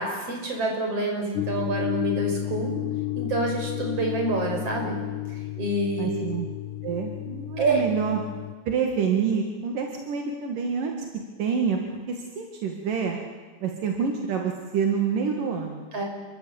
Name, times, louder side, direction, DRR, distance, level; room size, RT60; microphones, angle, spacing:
voice 1, 0.0-2.8 3.2-5.0 5.6-6.3 7.6-7.8 15.9-16.1, right 2 dB, 45° right, 2 dB, 6.7 m, -27 dB
sound 1, 1.3-8.6, left 15 dB, 75° left, 2.4 m, -32 dB
voice 2, 6.0-6.5 6.8-8.2 8.7-10.9 11.4-11.8 12.1-13.2 13.6-15.8, right 6 dB, 80° right, 2 dB, 3.7 m, -27 dB
28.0 x 23.5 x 8.8 m, 1.4 s
omnidirectional pair, 3.8 m